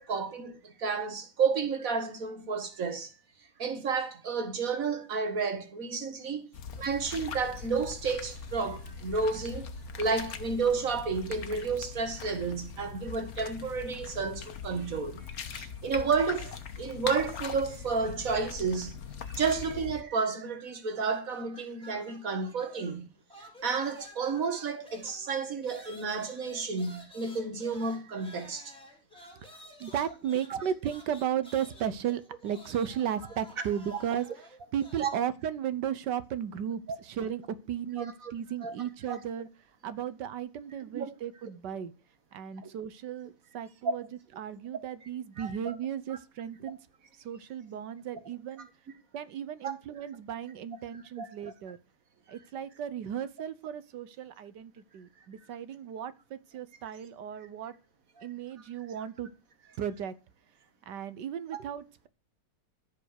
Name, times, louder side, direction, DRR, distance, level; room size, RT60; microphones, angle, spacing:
voice 1, 0.0-3.1 3.6-6.5 6.8-9.7 10.0-19.0 19.3-28.7 35.0-35.1 38.0-38.3 38.6-38.8 39.1-39.2 40.9-41.1 45.4-45.7 49.6-49.7 51.2-51.3, right 5 dB, 55° right, 2.1 m, -31 dB
sound 1, 6.5-20.0, left 6 dB, 60° left, 1.5 m, -41 dB
sound 2, 20.9-23.0 23.3-35.3, equal, 5° left, 3.7 m, -52 dB
voice 2, 29.4-39.5 39.8-41.9 42.3-44.1 44.3-46.8 47.2-48.7 49.1-51.8 52.3-57.7 58.2-59.3 59.8-60.1 60.9-62.1, right 9 dB, 85° right, 1.6 m, -35 dB
14.5 x 5.6 x 6.5 m
omnidirectional pair, 1.8 m